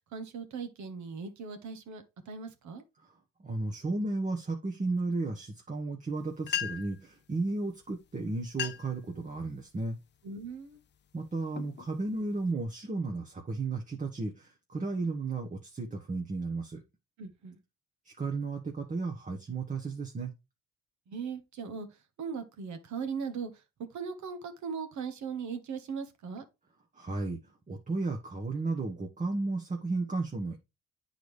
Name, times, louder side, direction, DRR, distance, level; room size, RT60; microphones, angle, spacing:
voice 1, 0.1-2.8 10.2-10.8 17.2-17.6 21.1-21.9 22.2-23.5 23.9-26.4, right 5 dB, 70° right, 1.3 m, -38 dB
voice 2, 3.4-10.0 11.1-16.8 18.0-20.3 26.9-27.4 27.7-30.6, right 3 dB, 25° right, 1.1 m, -34 dB
sound 1, 6.2-6.3 6.4-7.0 7.9-8.1 8.4-9.0 9.5-9.9 10.5-10.7 11.3-12.5, left 9 dB, 35° left, 0.5 m, -37 dB
9.0 x 4.1 x 3.2 m
cardioid pair, 90°, 30 cm